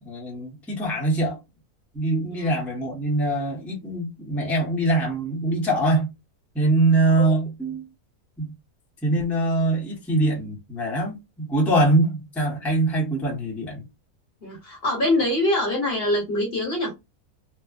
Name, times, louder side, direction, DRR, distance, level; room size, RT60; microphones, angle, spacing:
voice 1, 0.0-1.4 1.9-6.1 6.5-7.8 8.4-8.5 9.0-13.9, right 2 dB, ahead, 0.7 m, -23 dB
voice 2, 14.4-16.9, left 1 dB, 45° left, 1.1 m, -24 dB
3.1 x 2.0 x 2.4 m
omnidirectional pair, 1.6 m